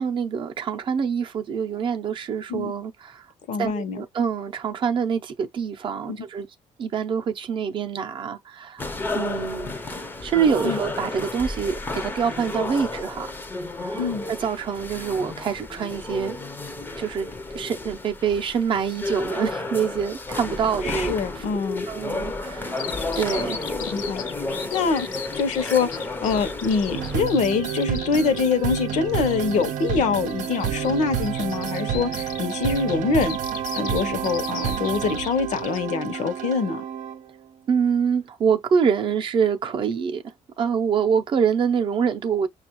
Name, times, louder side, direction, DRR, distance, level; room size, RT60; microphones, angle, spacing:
voice 1, 0.0-3.3 3.6-6.5 6.8-8.8 9.1-9.7 10.2-13.3 13.8-16.4 17.0-17.3 17.5-21.4 21.9-22.9 23.2-23.6 37.7-42.5, right 7 dB, 40° right, 0.6 m, -25 dB
voice 2, 3.5-4.0 6.1-6.2 10.6-10.8 14.0-14.3 20.8-21.9 23.9-24.2 24.7-25.1 25.3-33.4 33.8-36.8, left 5 dB, 65° left, 0.8 m, -24 dB
sound 1, 8.8-27.2, left 2 dB, 15° left, 0.6 m, -32 dB
Bird vocalization bird call bird song, 22.8-35.8, left 7 dB, 90° left, 0.9 m, -38 dB
sound 2, 26.9-37.3, right 9 dB, 80° right, 0.7 m, -29 dB
6.1 x 2.4 x 3.0 m
cardioid pair, 165°, 13 cm